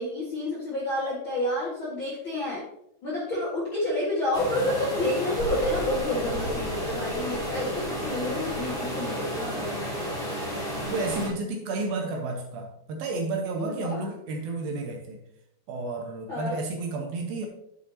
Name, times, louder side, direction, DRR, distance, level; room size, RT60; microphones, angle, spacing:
voice 1, 0.0-2.6 3.0-10.4 13.6-14.0 16.3-16.6, left 1 dB, 45° left, -6 dB, 1.7 m, -29 dB
sound 1, 4.3-11.3, equal, 10° left, 3.0 m, -32 dB
voice 2, 10.8-15.2 15.7-17.5, right 3 dB, 70° right, 3 dB, 2.5 m, -31 dB
10.5 x 7.3 x 2.8 m, 0.78 s
omnidirectional pair, 4.7 m